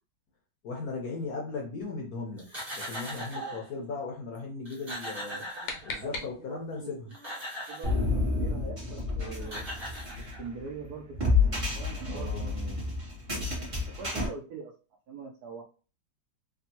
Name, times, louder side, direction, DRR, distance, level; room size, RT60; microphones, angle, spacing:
voice 1, 0.6-2.4 2.8-5.4 5.8-7.1 12.1-12.9, left 4 dB, 65° left, 0 dB, 0.9 m, -37 dB
sound 1, 2.4-3.7 4.3-4.4 4.6-6.2 6.9-8.0 9.1-9.2 9.4-10.7, equal, 15° right, 1.0 m, -39 dB
sound 2, 5.2-6.8, left 3 dB, 90° left, 1.6 m, -40 dB
voice 2, 5.3-7.1 7.7-9.7 10.4-12.8 13.5-13.7 14.0-14.7 15.1-15.6, right 4 dB, 75° right, 1 dB, 0.9 m, -43 dB
sound 3, 7.8-14.3, left 3 dB, 40° right, 0.4 m, -30 dB
3.5 x 2.3 x 2.8 m, 0.35 s
omnidirectional pair, 2.2 m